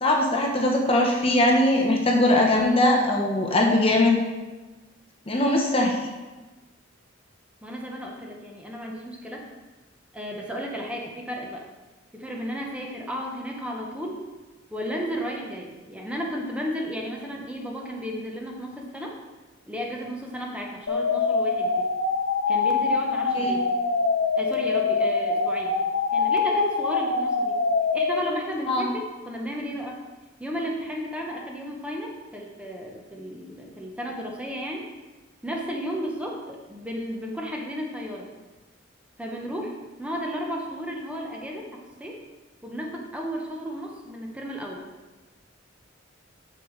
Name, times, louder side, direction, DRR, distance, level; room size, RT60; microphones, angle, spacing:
voice 1, 0.0-4.2 5.3-6.0 23.3-23.5 28.7-28.9, left 1 dB, 30° left, 0 dB, 0.9 m, -21 dB
voice 2, 7.6-9.4 10.1-11.7 12.1-14.2 14.7-19.1 19.7-21.7 22.5-23.7 24.4-25.8 26.1-27.6 27.9-30.0 30.4-34.8 35.4-38.3 39.2-39.7 40.0-42.2 42.6-44.8, equal, 5° right, -1 dB, 0.9 m, -33 dB
sound 1, 20.9-28.2, left 4 dB, 70° left, 0.8 m, -24 dB
8.4 x 6.8 x 3.2 m, 1.2 s
head